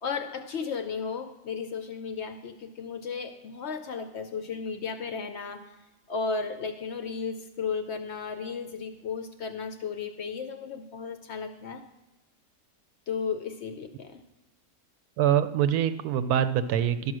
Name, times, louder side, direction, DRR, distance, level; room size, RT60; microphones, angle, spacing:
voice 1, 0.0-5.8 6.1-11.8 13.1-14.2, left 5 dB, 65° left, 8 dB, 0.7 m, -34 dB
voice 2, 15.2-17.1, right 10 dB, 80° right, 11 dB, 1.1 m, -24 dB
12.0 x 5.5 x 6.1 m, 1.0 s
omnidirectional pair, 1.6 m